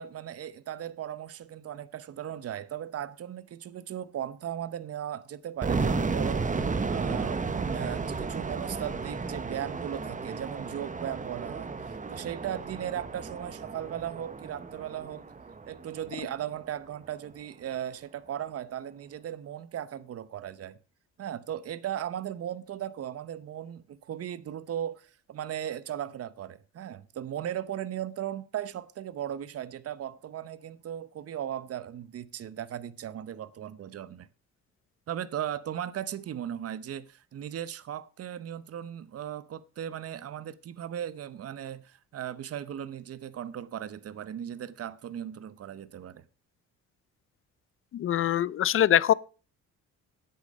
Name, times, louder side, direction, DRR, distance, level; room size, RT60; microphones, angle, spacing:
voice 1, 0.0-6.5 6.9-15.2 15.7-20.8 21.2-34.3 35.1-46.2, right 10 dB, 50° right, 0.8 m, -37 dB
sound 1, 5.6-16.5, right 4 dB, 25° right, 1.0 m, -33 dB
voice 2, 47.9-49.1, left 11 dB, 45° left, 0.5 m, -23 dB
10.0 x 8.5 x 5.2 m
cardioid pair, 90°, 30 cm